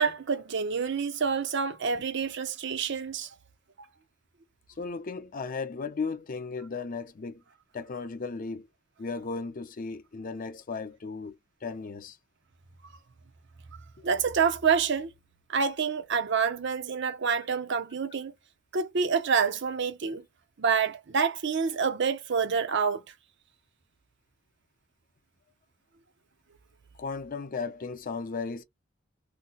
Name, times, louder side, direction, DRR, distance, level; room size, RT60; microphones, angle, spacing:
voice 1, 0.0-3.3 14.0-15.1 15.5-18.3 18.7-20.2 20.6-23.0, right 6 dB, 60° right, 0.6 m, -27 dB
voice 2, 4.8-7.4 7.7-8.7 9.0-11.4 11.6-12.2 27.0-28.6, left 4 dB, 45° left, 0.5 m, -35 dB
2.7 x 2.1 x 3.8 m
head